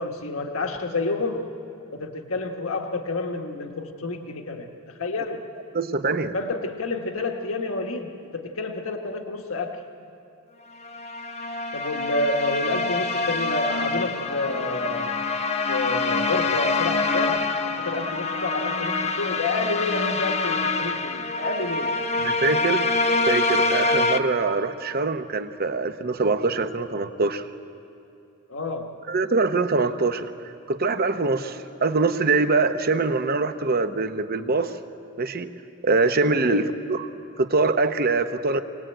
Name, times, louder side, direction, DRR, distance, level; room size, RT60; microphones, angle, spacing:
voice 1, 0.0-1.5 1.9-4.7 5.0-5.4 6.3-9.8 11.7-15.1 15.7-22.0 28.5-29.0 36.5-36.7, left 2 dB, 75° left, 4 dB, 1.4 m, -29 dB
voice 2, 5.7-6.3 22.2-22.9 23.3-27.4 29.1-34.8 35.2-35.5 35.8-37.1 37.4-38.6, right 3 dB, 45° right, 9 dB, 0.8 m, -23 dB
sound 1, 10.8-24.2, left 3 dB, 30° left, 0.9 m, -25 dB
24.5 x 18.5 x 9.0 m, 2.7 s
head